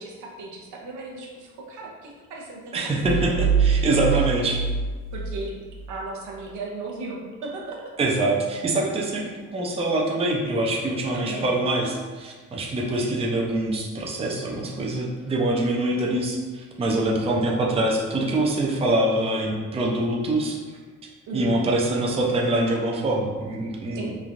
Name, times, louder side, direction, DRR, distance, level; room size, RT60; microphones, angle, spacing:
voice 1, 0.0-2.8 3.0-3.5 3.8-4.5 5.1-5.5 5.9-7.9 11.1-11.6 21.3-21.6 23.9-24.2, right 3 dB, 80° right, -1 dB, 0.6 m, -36 dB
voice 2, 2.7-4.6 8.0-20.6 21.3-24.1, right 1 dB, 20° right, -1 dB, 0.4 m, -24 dB
sound 1, 3.0-6.0, right 6 dB, 90° left, 0.6 m, -24 dB
3.1 x 2.3 x 2.5 m, 1.4 s
cardioid pair, 90°, 30 cm